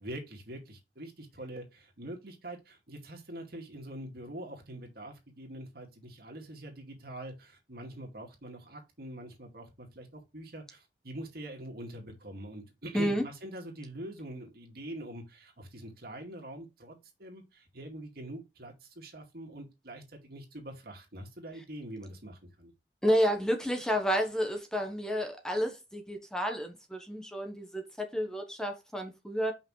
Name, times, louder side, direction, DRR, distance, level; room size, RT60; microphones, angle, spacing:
voice 1, 0.0-22.7, right 1 dB, 60° right, 2.2 m, -44 dB
voice 2, 23.0-29.5, equal, 5° left, 1.0 m, -30 dB
5.7 x 5.6 x 3.2 m
head